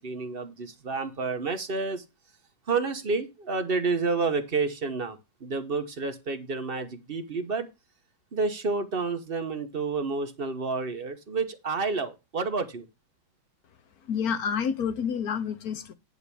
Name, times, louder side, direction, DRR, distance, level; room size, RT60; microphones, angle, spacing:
voice 1, 0.0-2.0 2.7-7.7 8.3-12.9, right 4 dB, 45° right, 0.7 m, -29 dB
voice 2, 14.0-15.9, left 7 dB, 60° left, 1.0 m, -29 dB
10.0 x 3.5 x 6.8 m
omnidirectional pair, 2.4 m